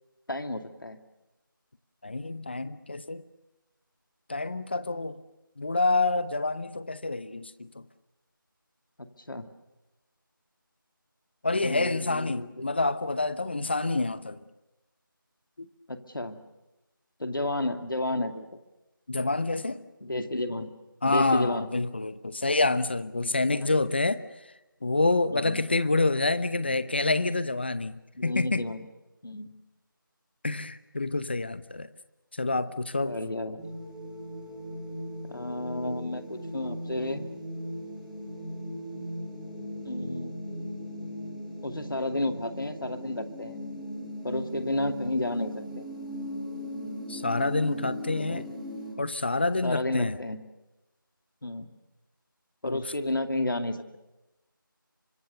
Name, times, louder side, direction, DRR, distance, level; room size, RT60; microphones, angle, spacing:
voice 1, 0.3-1.0 9.0-9.5 11.6-12.7 15.9-16.4 17.2-18.5 20.0-20.7 21.0-21.7 23.5-23.7 25.3-25.6 28.1-28.9 29.2-29.5 33.0-33.8 35.3-37.2 39.8-40.4 41.6-43.6 44.2-45.9 48.1-48.4 49.6-50.4 51.4-51.7 52.6-54.0, left 1 dB, 70° left, 7 dB, 2.4 m, -32 dB
voice 2, 2.0-3.2 4.3-5.2 5.6-7.7 11.4-14.4 15.6-15.7 19.1-19.8 21.0-24.2 24.8-28.6 30.4-31.9 32.4-33.2 47.1-48.4 49.0-50.1 52.6-52.8, left 3 dB, 30° left, 15 dB, 0.8 m, -27 dB
sound 1, 33.6-48.9, equal, ahead, 1.9 m, -38 dB
28.0 x 25.0 x 6.6 m, 1.0 s
figure-of-eight pair, 170°, 12 cm